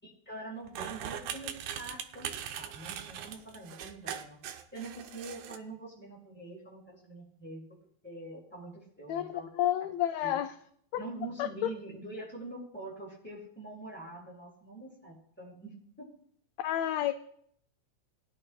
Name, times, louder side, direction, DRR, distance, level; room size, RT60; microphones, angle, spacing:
voice 1, 0.0-4.4 4.7-7.6 8.0-9.5 10.2-10.4 11.0-16.1, right 2 dB, 5° left, -5 dB, 5.6 m, -45 dB
sound 1, 0.7-5.6, right 9 dB, 90° right, 2.2 m, -40 dB
voice 2, 9.1-10.5 10.9-11.0 11.4-11.7 16.6-17.1, left 12 dB, 80° left, 8 dB, 1.6 m, -30 dB
21.0 x 11.0 x 2.2 m, 0.66 s
omnidirectional pair, 3.3 m